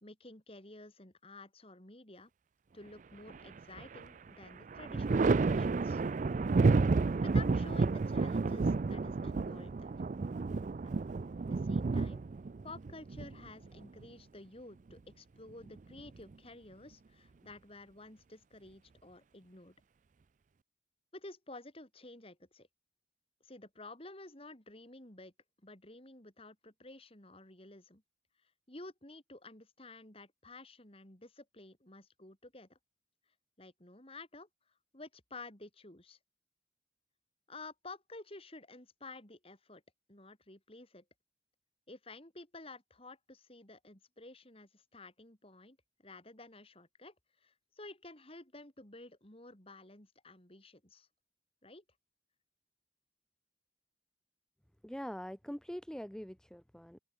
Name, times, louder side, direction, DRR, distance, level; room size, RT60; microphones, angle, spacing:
voice 1, 0.0-2.3 2.7-6.0 7.2-9.9 10.8-12.2 12.6-19.8 21.1-22.7 23.4-25.3 25.6-28.0 28.7-32.8 33.6-34.5 34.9-36.2 37.5-39.8 40.1-41.0 41.9-45.8 46.0-47.1 47.4-51.1 51.6-51.8, left 2 dB, 30° left, 3.7 m, -52 dB
Thunder, 3.3-4.1 4.4-14.0 15.5-16.3, right 3 dB, 45° right, 0.4 m, -31 dB
voice 2, 54.8-57.0, equal, 5° left, 0.6 m, -43 dB
open air
head